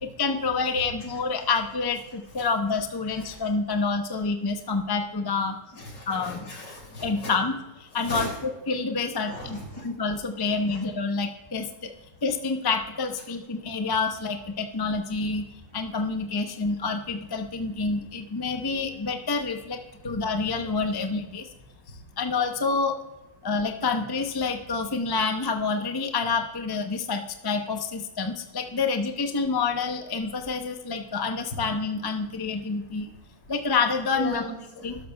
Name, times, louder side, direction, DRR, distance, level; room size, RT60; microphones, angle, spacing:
voice 1, 0.0-5.6 6.1-6.4 7.0-8.3 8.7-11.9 12.2-15.4 15.7-21.5 22.2-22.9 23.4-33.1 33.5-34.4 34.8-35.0, left 4 dB, 35° left, 5 dB, 0.3 m, -28 dB
voice 2, 5.7-7.3 7.9-8.4 9.2-9.8 10.5-10.8 34.1-35.0, left 1 dB, 70° left, 1 dB, 3.5 m, -38 dB
12.5 x 12.0 x 2.3 m, 1.0 s
omnidirectional pair, 2.0 m